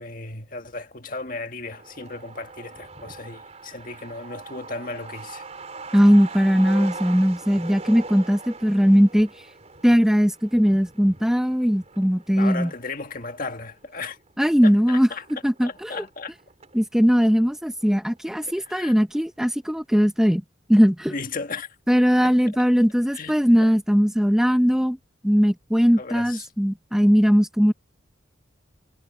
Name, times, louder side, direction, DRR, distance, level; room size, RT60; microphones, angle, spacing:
voice 1, 0.0-5.5 12.4-14.2 14.6-15.2 15.6-16.3 18.6-18.9 21.1-21.7 22.2-22.3 23.1-23.7 26.0-26.5, left 3 dB, 45° left, 1.7 m, -35 dB
Truck, 1.6-16.8 17.2-17.3 17.5-18.4 18.7-18.8 19.1-19.5, right 3 dB, 35° right, 4.0 m, -41 dB
voice 2, 5.9-9.5 9.8-12.7 14.4-15.1 15.4-16.0 16.7-20.4 20.7-21.1 21.9-25.0 25.2-27.7, equal, 5° right, 0.7 m, -19 dB
head